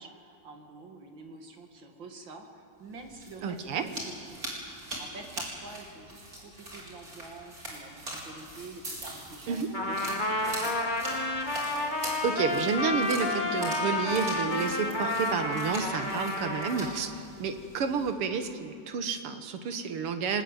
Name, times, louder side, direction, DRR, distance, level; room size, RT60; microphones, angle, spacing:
voice 1, 0.0-4.4 4.7-11.0, right 3 dB, 60° right, 4 dB, 2.8 m, -47 dB
sound 1, 2.9-18.1, right 1 dB, 40° right, 5.0 m, -42 dB
voice 2, 3.4-3.9 9.5-9.7 12.2-17.1 17.4-20.4, right 5 dB, 85° right, 8 dB, 2.3 m, -30 dB
Trumpet, 9.7-17.0, left 2 dB, 20° left, 1.8 m, -30 dB
23.5 x 21.0 x 9.1 m, 2.5 s
omnidirectional pair, 2.4 m